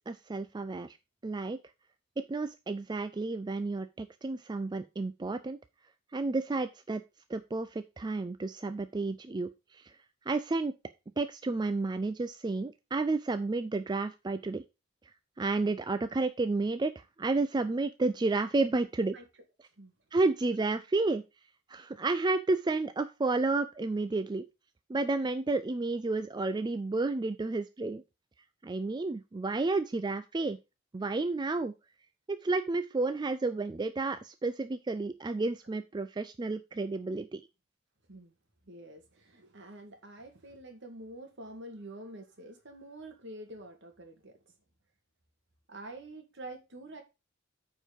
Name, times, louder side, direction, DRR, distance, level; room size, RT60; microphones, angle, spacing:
voice 1, 0.1-1.0 1.2-1.6 2.3-5.6 6.1-7.0 7.3-9.9 10.3-10.7 11.2-14.6 15.4-19.2 20.1-21.2 21.7-24.4 24.9-28.0 28.6-30.6 30.9-31.7 32.3-37.4, right 3 dB, 20° right, 0.4 m, -31 dB
voice 2, 38.7-44.4 45.7-47.0, right 1 dB, 60° right, 2.0 m, -47 dB
9.1 x 4.6 x 5.2 m
head